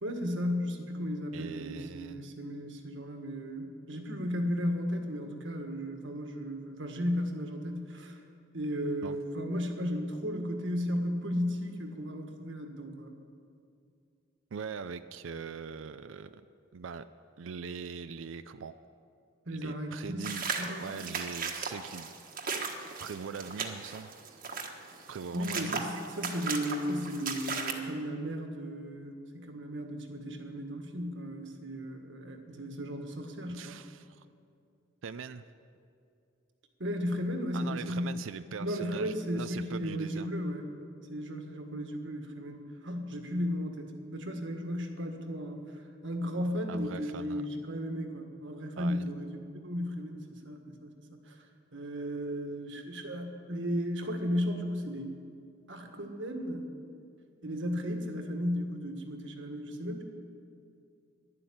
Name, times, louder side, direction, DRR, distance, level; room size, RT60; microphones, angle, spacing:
voice 1, 0.0-8.2 8.5-13.2 19.4-21.0 25.3-33.8 36.8-38.2 38.6-40.7 41.1-50.9 51.2-51.5 51.7-55.1 55.7-56.7 57.4-60.0, equal, 70° right, 4 dB, 1.7 m, -35 dB
voice 2, 1.3-2.4 9.0-9.2 14.5-16.4 16.7-17.1 17.4-18.7 19.5-22.1 23.0-24.1 25.1-26.0 33.5-34.3 35.0-35.4 37.5-40.3 46.7-47.4 48.8-49.0, right 6 dB, 85° right, 11 dB, 0.5 m, -42 dB
sound 1, 20.2-27.7, right 5 dB, 50° right, 1.4 m, -37 dB
12.0 x 11.0 x 8.7 m, 2.4 s
head